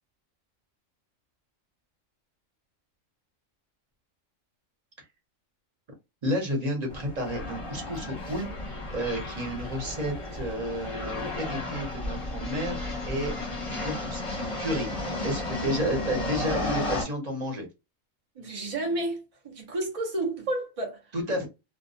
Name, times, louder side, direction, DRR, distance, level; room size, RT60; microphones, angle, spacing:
voice 1, 6.2-8.5 8.9-17.7 21.1-21.5, equal, 35° right, 0.8 m, -31 dB
sound 1, 6.9-17.0, left 2 dB, 30° left, 0.7 m, -33 dB
voice 2, 18.4-21.1, right 2 dB, 60° right, 0.3 m, -31 dB
2.2 x 2.2 x 2.6 m
omnidirectional pair, 1.4 m